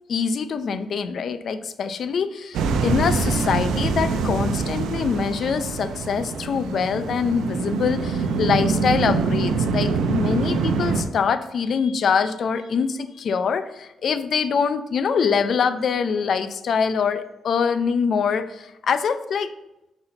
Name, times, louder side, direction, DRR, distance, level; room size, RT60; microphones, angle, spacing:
voice 1, 0.1-19.5, left 6 dB, 65° left, 12 dB, 0.5 m, -24 dB
sound 1, 2.5-11.0, right 4 dB, 80° right, 0.6 m, -24 dB
6.1 x 5.5 x 3.8 m, 0.93 s
supercardioid pair, 50°, 0 cm